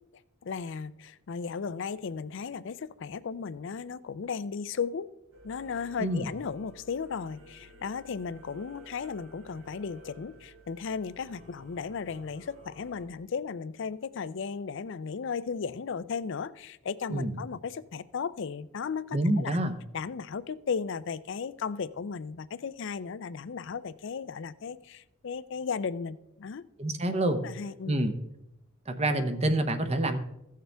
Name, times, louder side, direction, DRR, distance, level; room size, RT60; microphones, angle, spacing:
voice 1, 0.4-5.1 5.4-19.6 19.9-26.6 27.4-28.0, left 5 dB, 60° left, 16 dB, 0.4 m, -35 dB
Singing / Musical instrument, 5.3-13.0, equal, 80° right, 2.7 m, -53 dB
voice 2, 19.1-19.7 26.8-27.4 27.9-28.1 28.9-30.2, right 1 dB, 30° right, 8 dB, 0.8 m, -27 dB
16.0 x 6.6 x 3.4 m, 0.87 s
head